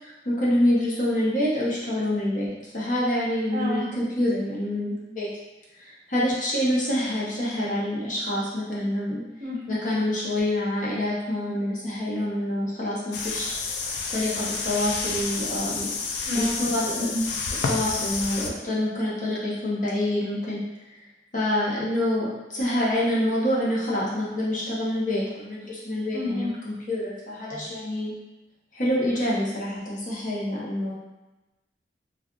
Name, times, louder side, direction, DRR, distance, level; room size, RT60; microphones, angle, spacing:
voice 1, 0.0-5.3 5.8-9.2 9.7-13.5 14.1-15.9 16.3-17.1 17.7-20.6 21.3-28.1 28.7-30.9, left 1 dB, 45° left, -7 dB, 0.8 m, -26 dB
voice 2, 3.5-3.9 9.4-9.8 16.3-16.6 17.0-17.3 26.1-26.5, left 1 dB, 45° right, -4 dB, 0.7 m, -29 dB
sound 1, 13.1-18.5, left 4 dB, 70° left, 0.4 m, -30 dB
3.7 x 2.4 x 2.3 m, 1.1 s
head